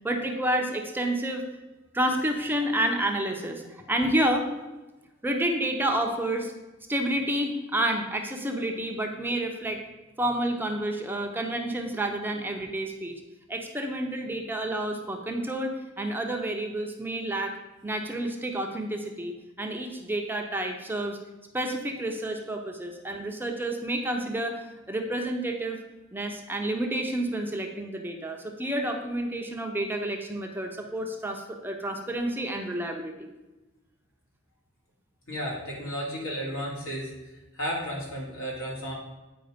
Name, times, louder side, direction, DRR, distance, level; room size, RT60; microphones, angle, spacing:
voice 1, 0.0-1.4 1.9-4.5 5.2-6.5 6.9-9.8 10.2-13.2 13.5-17.5 17.8-21.2 21.5-25.8 26.1-33.3, right 1 dB, 10° right, 2 dB, 0.7 m, -29 dB
voice 2, 35.3-37.1 37.5-38.9, equal, 80° left, -4 dB, 2.8 m, -33 dB
9.1 x 4.8 x 5.1 m, 1.1 s
head